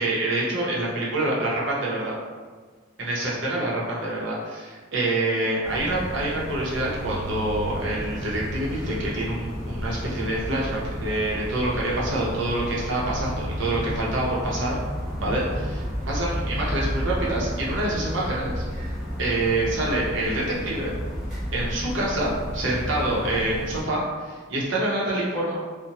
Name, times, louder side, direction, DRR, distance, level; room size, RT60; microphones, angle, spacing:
voice 1, 0.0-2.1 3.0-14.8 15.2-18.6 19.2-20.9 21.5-25.6, right 1 dB, 75° right, -5 dB, 0.6 m, -26 dB
sound 1, 5.6-23.8, equal, 5° right, 1.3 m, -32 dB
2.7 x 2.1 x 2.8 m, 1.5 s
head